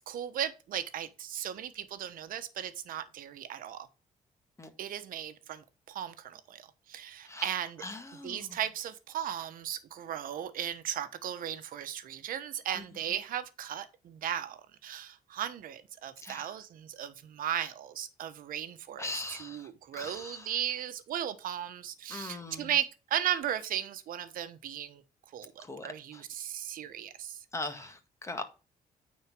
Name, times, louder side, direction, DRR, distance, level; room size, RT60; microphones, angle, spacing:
voice 1, 0.1-3.9 4.8-7.8 8.2-25.0 25.3-27.4, right 10 dB, 75° right, 1.1 m, -36 dB
voice 2, 7.8-8.5 16.2-16.5 19.0-19.7 20.0-20.5 22.1-22.7 25.6-26.2 27.5-28.4, left 2 dB, 20° left, 1.8 m, -40 dB
9.4 x 4.3 x 6.0 m
cardioid pair, 105°, 14 cm